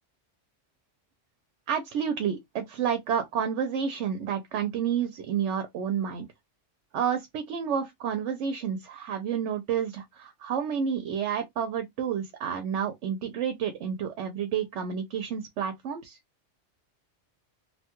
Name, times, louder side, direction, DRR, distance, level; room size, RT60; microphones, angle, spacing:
voice 1, 1.7-6.3 6.9-16.2, right 8 dB, 80° right, 0.9 m, -30 dB
2.7 x 2.2 x 2.8 m
omnidirectional pair, 1.2 m